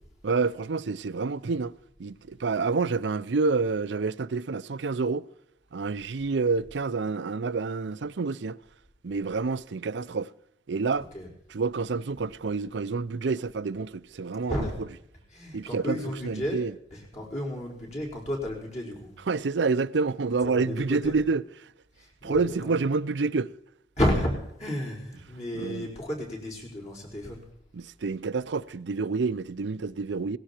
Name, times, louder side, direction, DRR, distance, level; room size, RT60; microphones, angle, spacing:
voice 1, 0.2-1.7 2.0-5.3 5.7-8.6 9.0-10.3 10.7-11.1 11.5-14.7 15.5-16.0 16.2-16.7 19.3-21.4 22.2-23.5 25.5-25.9 27.7-30.4, right 4 dB, 85° right, 0.5 m, -28 dB
voice 2, 14.5-14.9 15.3-16.6 16.9-19.1 20.4-21.2 22.0-22.7 24.0-24.3 24.6-27.4, equal, 40° left, 5.2 m, -32 dB
18.0 x 16.5 x 4.5 m
head